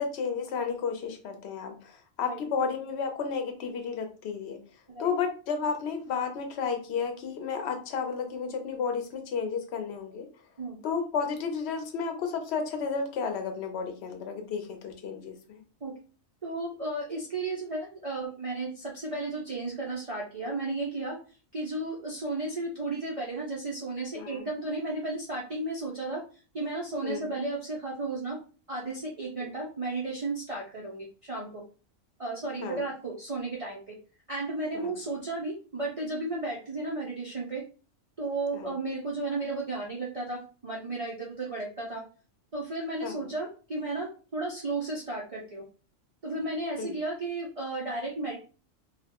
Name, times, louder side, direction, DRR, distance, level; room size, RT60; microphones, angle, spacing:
voice 1, 0.0-4.6 5.0-10.3 10.8-15.6 24.1-24.5 27.0-27.4 29.4-29.5 32.6-32.8 34.7-34.9 38.5-38.7 43.0-43.2 46.8-47.0, left 5 dB, 60° left, 5 dB, 0.8 m, -32 dB
voice 2, 16.4-21.2 21.5-26.2 26.5-28.4 28.7-31.6 32.2-33.9 34.3-37.6 38.2-42.0 42.5-45.6 46.2-48.4, right 2 dB, 60° right, -3 dB, 0.3 m, -34 dB
2.3 x 2.1 x 2.8 m, 0.35 s
omnidirectional pair, 1.3 m